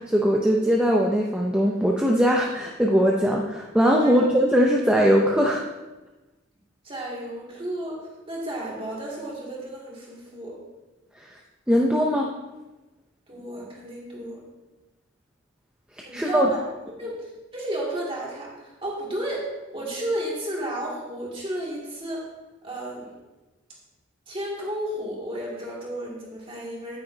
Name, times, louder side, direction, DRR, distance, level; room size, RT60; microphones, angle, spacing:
voice 1, 0.0-5.6 11.7-12.3 16.1-16.5, equal, 5° right, -1 dB, 0.5 m, -20 dB
voice 2, 6.8-10.6 13.3-14.4 16.0-16.7 17.0-19.4 19.7-22.3 22.6-23.2 24.3-27.0, right 1 dB, 25° right, -4 dB, 2.2 m, -32 dB
9.7 x 9.1 x 2.7 m, 1.1 s
head